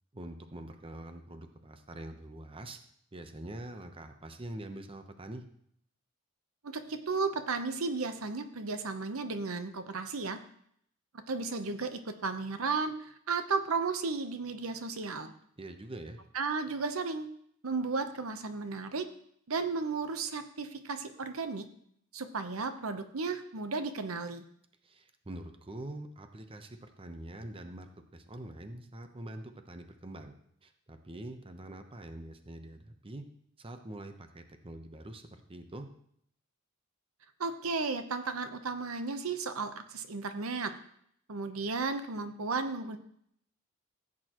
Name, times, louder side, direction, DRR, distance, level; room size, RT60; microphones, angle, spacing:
voice 1, 0.1-2.8 3.1-5.4 15.6-16.2 24.8-30.3 30.6-33.2 33.6-35.9, right 1 dB, 25° right, 7 dB, 0.9 m, -45 dB
voice 2, 6.6-10.4 11.3-15.3 16.3-17.3 17.6-19.0 19.5-21.7 22.1-24.4 37.4-40.7 41.3-43.0, right 4 dB, 90° right, 9 dB, 0.9 m, -34 dB
15.5 x 8.6 x 3.0 m, 0.67 s
head